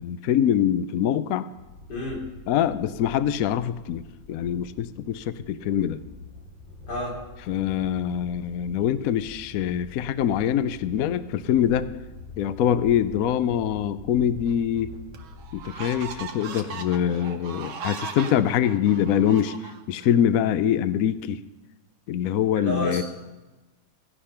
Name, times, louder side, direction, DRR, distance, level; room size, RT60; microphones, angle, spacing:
voice 1, 0.0-1.5 2.5-4.0 4.3-6.0 7.5-11.9 12.4-14.9 15.5-19.5 19.9-21.4 22.1-23.0, left 9 dB, 80° left, 14 dB, 0.8 m, -24 dB
sound 1, 1.5-16.3, left 3 dB, 40° left, 6.1 m, -45 dB
voice 2, 1.9-2.2 6.9-7.2 22.6-23.0, left 1 dB, 55° left, -2 dB, 3.8 m, -29 dB
sound 2, 14.5-14.6 15.1-20.1, right 5 dB, 80° right, 1.9 m, -38 dB
17.0 x 11.0 x 5.8 m, 1.1 s
omnidirectional pair, 2.2 m